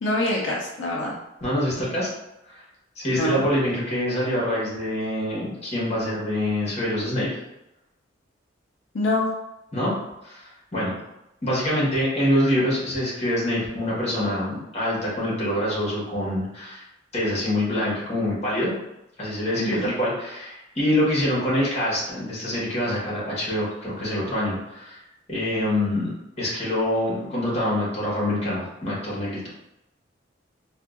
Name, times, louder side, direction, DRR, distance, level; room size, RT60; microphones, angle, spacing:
voice 1, 0.0-1.2 3.1-3.4 8.9-9.3 19.6-19.9, left 1 dB, 80° left, -3 dB, 0.5 m, -25 dB
voice 2, 1.4-2.1 2.5-2.6 2.9-7.3 9.7-10.0 10.2-10.4 10.7-11.0 11.4-16.8 17.1-18.7 19.2-25.0 25.3-26.1 26.4-29.4, left 1 dB, 35° left, -6 dB, 1.3 m, -25 dB
3.6 x 2.4 x 2.4 m, 0.89 s
head